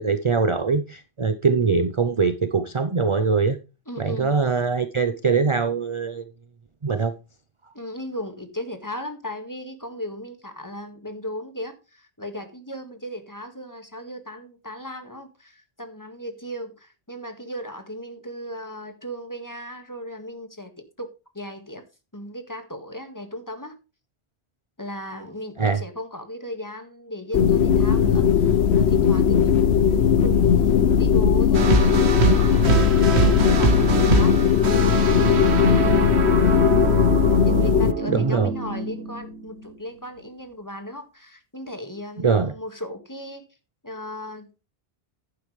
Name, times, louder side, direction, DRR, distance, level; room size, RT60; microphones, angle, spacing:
voice 1, 0.0-3.6 4.0-6.2 6.8-7.1 25.6-25.8 38.1-38.5 42.2-42.5, right 5 dB, 35° right, 0.6 m, -22 dB
voice 2, 3.9-4.3 7.7-21.8 22.1-23.8 24.8-29.7 30.2-36.1 36.4-36.7 37.4-43.5 43.8-44.6, left 1 dB, 15° left, 1.8 m, -37 dB
sound 1, 27.3-37.9, left 7 dB, 75° left, 1.0 m, -18 dB
sound 2, 31.5-39.7, right 4 dB, 70° right, 1.6 m, -24 dB
11.0 x 9.6 x 3.2 m
omnidirectional pair, 1.1 m